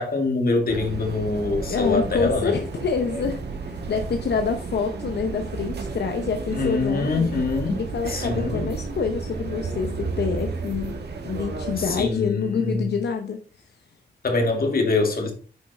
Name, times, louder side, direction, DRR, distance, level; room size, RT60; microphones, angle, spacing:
voice 1, 0.0-2.6 6.5-7.8 8.1-8.7 11.8-12.9 14.2-15.3, left 3 dB, 60° left, 2.2 m, -24 dB
sound 1, 0.7-12.1, right 4 dB, 80° right, 1.4 m, -32 dB
voice 2, 1.7-7.3 7.7-13.7, left 5 dB, 80° left, 0.7 m, -27 dB
9.2 x 5.4 x 3.3 m
wide cardioid pair, 90°, 17 cm